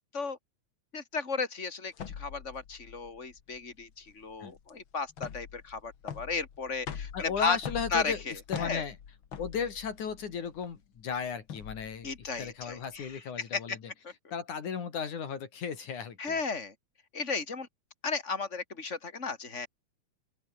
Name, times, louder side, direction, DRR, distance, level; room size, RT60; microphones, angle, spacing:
voice 1, 0.9-7.6 7.9-8.8 12.0-13.1 13.5-13.8 14.0-14.1 16.2-16.7 17.1-17.7 18.0-19.7, left 4 dB, 20° left, 4.4 m, -34 dB
sound 1, 1.9-13.1, left 8 dB, 45° left, 2.2 m, -44 dB
voice 2, 7.1-9.0 9.4-13.8 14.3-16.4, left 6 dB, 75° left, 4.4 m, -35 dB
open air
omnidirectional pair, 3.5 m